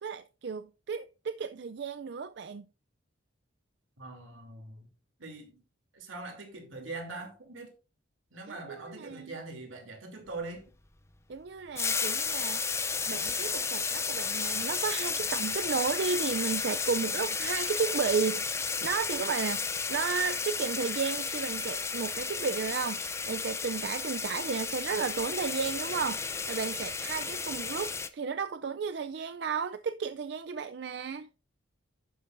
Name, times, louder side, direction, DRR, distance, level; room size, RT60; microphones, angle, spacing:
voice 1, 0.0-2.7 8.5-9.3 11.3-12.6 13.1-31.3, right 5 dB, 55° right, 0.4 m, -33 dB
voice 2, 4.0-4.9 5.2-5.6 5.9-7.7 8.3-10.6, right 3 dB, 80° right, 3.0 m, -42 dB
sound 1, 11.8-28.1, left 5 dB, 15° left, 0.5 m, -33 dB
11.0 x 9.1 x 2.6 m
head